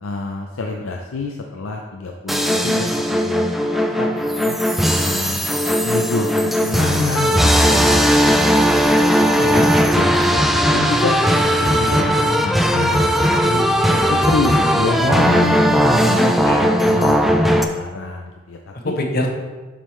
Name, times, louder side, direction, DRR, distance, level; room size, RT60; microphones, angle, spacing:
voice 1, 0.0-4.6 5.0-5.5 5.8-11.2 11.6-15.1 15.9-18.6 18.8-18.9, left 3 dB, 85° left, 1 dB, 0.5 m, -28 dB
sound 1, 2.3-17.6, equal, ahead, 0.3 m, -17 dB
voice 2, 15.0-16.9 18.8-19.3, left 1 dB, 50° left, 2 dB, 0.9 m, -23 dB
7.2 x 5.4 x 3.2 m, 1.3 s
head